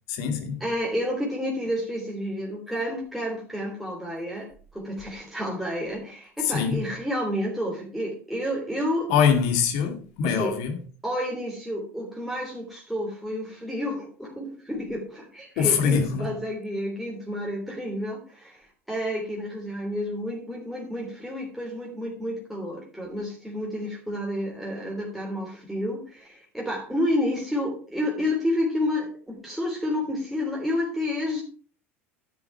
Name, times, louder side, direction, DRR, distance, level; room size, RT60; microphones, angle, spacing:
voice 1, 0.1-0.6 6.4-6.8 9.1-10.8 15.6-16.3, left 7 dB, 60° left, 2.3 m, -23 dB
voice 2, 0.6-9.1 10.2-10.5 11.0-31.4, left 1 dB, ahead, 3.2 m, -30 dB
11.0 x 7.5 x 4.6 m
figure-of-eight pair, 70°, 7 cm